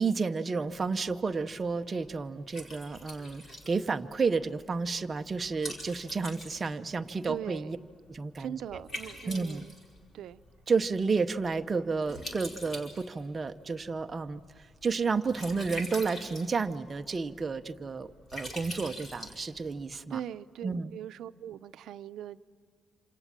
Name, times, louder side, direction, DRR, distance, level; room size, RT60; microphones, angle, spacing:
voice 1, 0.0-7.8 8.1-8.8 9.3-9.6 10.7-14.4 14.8-20.2 20.6-20.9, right 4 dB, 25° right, 0.8 m, -31 dB
Liquid, 0.7-20.0, equal, 30° left, 4.8 m, -46 dB
voice 2, 7.3-7.8 8.4-9.7 10.1-10.4 20.1-22.4, right 10 dB, 80° right, 0.7 m, -40 dB
27.5 x 27.0 x 7.5 m
cardioid pair, 165°, 0 cm